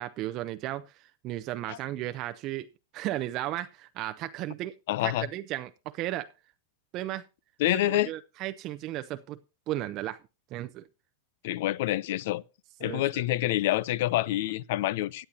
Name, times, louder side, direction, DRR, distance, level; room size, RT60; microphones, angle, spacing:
voice 1, 0.0-2.7 2.9-4.7 5.0-6.3 6.9-7.3 7.7-9.4 9.7-10.2 10.5-10.8 12.8-13.2, right 15 dB, 40° right, 0.6 m, -35 dB
voice 2, 4.9-5.3 7.6-8.1 11.4-12.4 12.8-15.2, left 15 dB, 65° left, 0.6 m, -27 dB
17.0 x 9.9 x 2.8 m
supercardioid pair, 145°, 0 cm